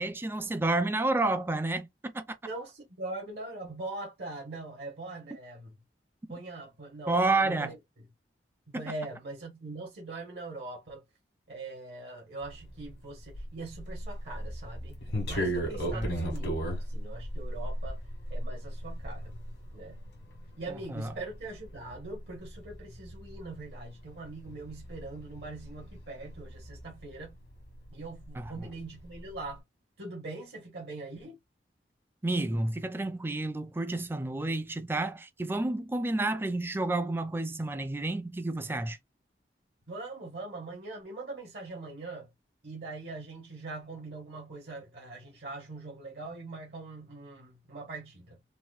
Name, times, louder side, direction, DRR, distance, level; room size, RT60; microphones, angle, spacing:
voice 1, 0.0-2.3 7.1-7.7 8.7-8.8 15.9-16.1 20.7-21.1 28.4-28.5 32.2-39.0, right 2 dB, 15° right, 0.3 m, -30 dB
voice 2, 2.4-5.7 6.3-7.8 8.7-11.0 11.5-18.0 18.3-19.3 19.7-20.0 20.6-27.3 27.9-29.6 30.0-31.4 39.9-42.3 42.6-48.4, right 2 dB, 70° right, 1.1 m, -42 dB
sound 1, 12.4-28.0 28.2-29.5, equal, 85° left, 1.4 m, -37 dB
4.0 x 2.1 x 2.3 m
head